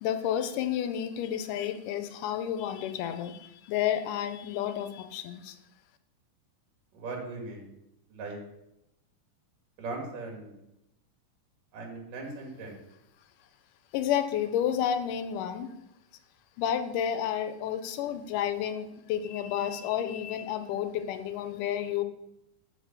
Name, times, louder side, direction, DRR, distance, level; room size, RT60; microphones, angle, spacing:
voice 1, 0.0-5.6 13.9-15.7 16.6-22.0, left 10 dB, 80° left, 9 dB, 2.2 m, -31 dB
voice 2, 6.9-7.7 8.1-8.4 9.8-10.5 11.7-12.8, right 3 dB, 80° right, 0 dB, 3.6 m, -39 dB
8.2 x 4.9 x 7.2 m, 0.84 s
omnidirectional pair, 3.7 m